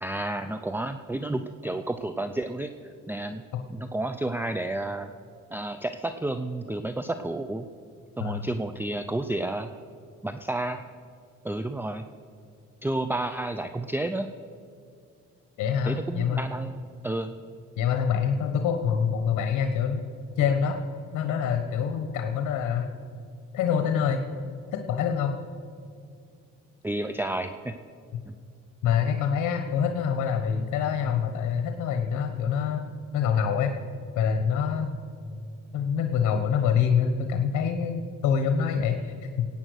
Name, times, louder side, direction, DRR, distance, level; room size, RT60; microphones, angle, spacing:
voice 1, 0.0-2.7 3.1-3.4 3.7-5.1 5.5-7.7 8.2-9.7 10.2-10.9 11.4-12.1 12.8-14.3 15.9-17.3 26.8-27.7 28.3-28.4, right 2 dB, 5° right, 9 dB, 0.5 m, -31 dB
voice 2, 15.6-16.4 17.8-20.0 20.4-20.8 21.1-22.9 23.5-24.3 24.7-25.4 28.8-32.8 33.1-33.7 34.1-34.9 35.7-39.5, left 7 dB, 80° left, 6 dB, 1.1 m, -25 dB
18.0 x 8.7 x 6.4 m, 2.3 s
cardioid pair, 90°, 30 cm